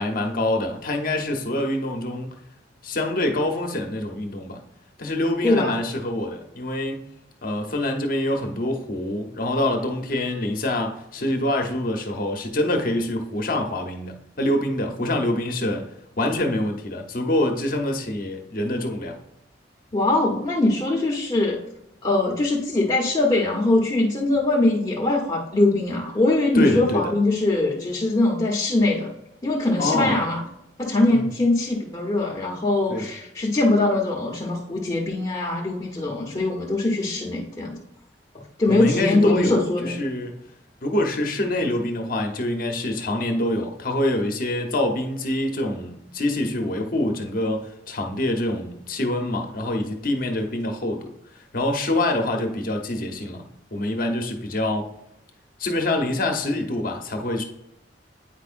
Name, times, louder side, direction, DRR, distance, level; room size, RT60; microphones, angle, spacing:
voice 1, 0.0-2.3 2.8-4.6 5.0-7.0 7.4-15.8 16.2-19.2 26.5-27.0 29.8-30.2 31.1-31.3 32.9-33.1 38.7-40.3 40.8-51.1 51.5-53.5 53.7-54.9 55.6-57.4, left 1 dB, 50° left, 4 dB, 1.0 m, -25 dB
voice 2, 5.4-5.8 19.9-21.6 22.0-29.1 29.4-30.4 30.8-37.8 38.6-39.9, left 2 dB, 25° left, -2 dB, 0.9 m, -22 dB
9.1 x 4.8 x 2.5 m, 0.80 s
head